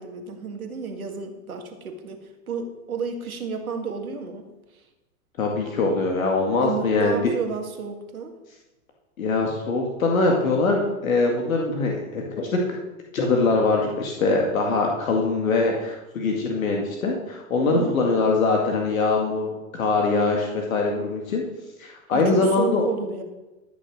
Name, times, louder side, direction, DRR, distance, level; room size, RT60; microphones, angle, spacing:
voice 1, 0.0-4.5 6.6-8.3 17.6-18.0 22.1-23.2, right 5 dB, 80° right, 4 dB, 2.2 m, -31 dB
voice 2, 5.4-7.1 9.2-12.6 13.1-21.4 21.8-22.9, left 3 dB, 70° left, 1 dB, 2.1 m, -23 dB
13.5 x 6.4 x 6.4 m, 1.1 s
hypercardioid pair, 105°, 42 cm